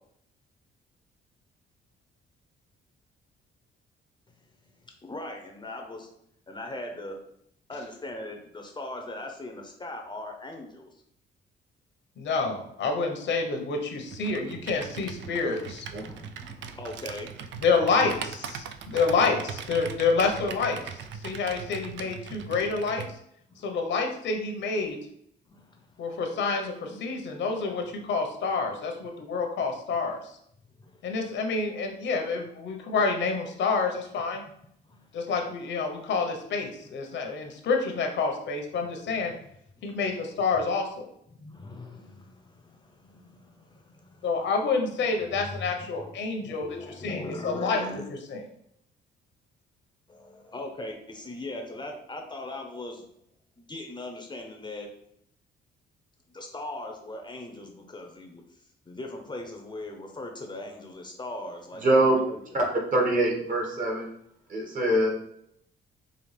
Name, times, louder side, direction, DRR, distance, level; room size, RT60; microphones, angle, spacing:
voice 1, 4.8-6.1 6.5-7.2 7.7-11.0 14.2-14.6 14.9-17.3 21.2-21.4 22.6-22.7 23.5-23.8 25.5-26.2 30.8-31.1 34.8-35.3 37.2-37.3 39.8-39.9 41.3-44.5 44.8-44.9 45.3-48.0 50.1-53.0 53.6-54.9 56.3-62.6, left 2 dB, 20° left, 3 dB, 0.7 m, -40 dB
voice 2, 12.2-15.9 17.6-20.8 21.2-23.0 23.6-25.0 26.0-30.4 31.0-34.4 35.1-39.3 39.8-41.1 44.2-46.7 47.0-47.8 48.3-48.4, left 4 dB, 65° left, 3 dB, 0.9 m, -28 dB
Computer keyboard, 14.1-23.1, right 7 dB, 65° right, 0.4 m, -40 dB
voice 3, 61.8-62.2 62.5-62.6 62.9-64.1 64.5-65.1, right 1 dB, 45° right, -1 dB, 1.5 m, -23 dB
5.0 x 2.4 x 3.2 m, 0.72 s
cardioid pair, 90°, 20 cm